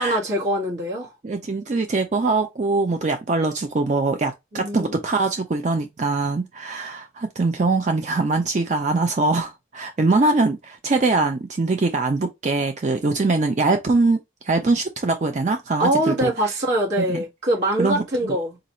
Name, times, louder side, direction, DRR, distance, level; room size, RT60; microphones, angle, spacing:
voice 1, 0.0-1.1 4.5-5.0 15.8-18.6, right 1 dB, 75° right, 1.8 m, -23 dB
voice 2, 1.2-14.2 14.5-16.3 17.0-17.2 17.8-18.4, right 3 dB, 40° right, 0.4 m, -22 dB
3.8 x 2.6 x 4.2 m
head